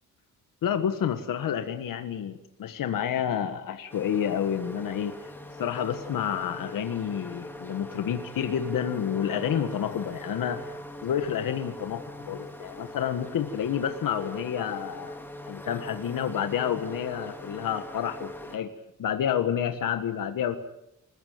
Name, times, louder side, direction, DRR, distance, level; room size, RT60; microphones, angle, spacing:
voice 1, 0.6-5.2 5.6-10.6 11.0-15.2 15.5-18.7 19.0-20.6, left 9 dB, 85° left, 8 dB, 1.6 m, -29 dB
sound 1, 3.9-18.6, left 1 dB, 5° left, 2.4 m, -41 dB
26.5 x 15.5 x 9.3 m, 0.85 s
wide cardioid pair, 165°, 32 cm